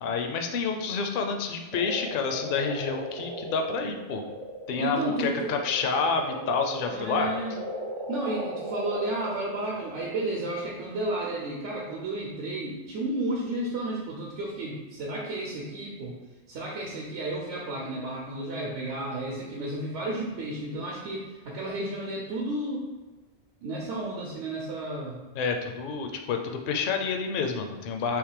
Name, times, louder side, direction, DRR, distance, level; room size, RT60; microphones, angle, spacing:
voice 1, 0.0-4.2 4.7-7.3 25.3-28.2, left 5 dB, 60° left, 4 dB, 0.6 m, -29 dB
sound 1, 1.7-9.5, right 1 dB, 60° right, 0.3 m, -37 dB
voice 2, 4.8-5.5 6.9-7.6 8.1-16.2 16.5-22.9 23.6-25.2, right 2 dB, 80° right, -3 dB, 1.0 m, -32 dB
3.6 x 3.0 x 4.8 m, 1.2 s
omnidirectional pair, 1.2 m